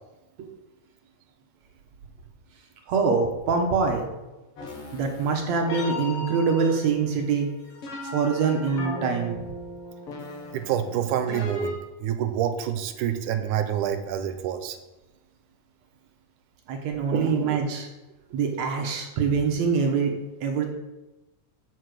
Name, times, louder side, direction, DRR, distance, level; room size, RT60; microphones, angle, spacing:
voice 1, 2.9-4.1 4.9-7.5 8.0-9.3 16.7-17.9 18.3-20.1 20.4-20.7, right 5 dB, 65° right, 2 dB, 2.3 m, -24 dB
sound 1, 4.6-11.7, left 2 dB, 50° left, 2.2 m, -37 dB
voice 2, 10.5-14.8 17.1-17.6, right 10 dB, 85° right, 8 dB, 2.2 m, -27 dB
7.5 x 6.5 x 6.5 m, 1.1 s
omnidirectional pair, 3.5 m